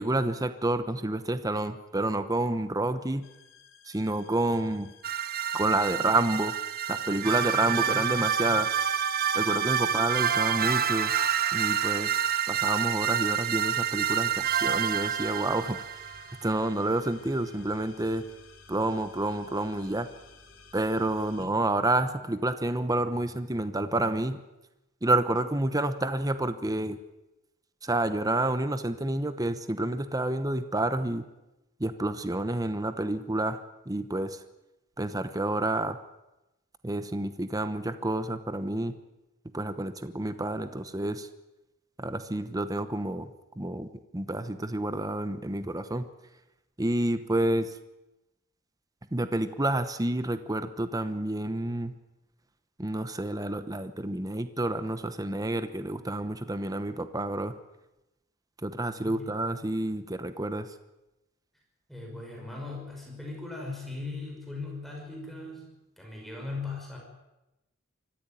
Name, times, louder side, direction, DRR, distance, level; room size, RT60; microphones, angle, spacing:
voice 1, 0.0-3.2 3.9-4.9 5.5-6.6 6.9-8.7 9.3-11.1 11.5-12.2 12.5-15.9 16.4-18.2 18.7-20.1 20.7-24.4 25.0-27.0 27.8-31.2 31.8-33.6 33.9-34.4 35.0-36.0 36.8-39.0 39.5-41.3 42.0-43.3 43.6-43.9 44.1-46.1 46.8-47.8 49.1-51.9 52.8-57.6 58.6-60.7, right 2 dB, 20° right, 11 dB, 0.9 m, -29 dB
sound 1, 3.2-21.5, left 5 dB, 70° left, 3.9 m, -53 dB
sound 2, 5.0-16.3, right 8 dB, 45° right, 1.1 m, -28 dB
voice 2, 9.8-10.2 21.3-21.5 59.0-59.3 61.9-65.6 66.0-67.0, left 3 dB, ahead, -1 dB, 5.8 m, -39 dB
24.5 x 15.0 x 9.0 m, 0.97 s
head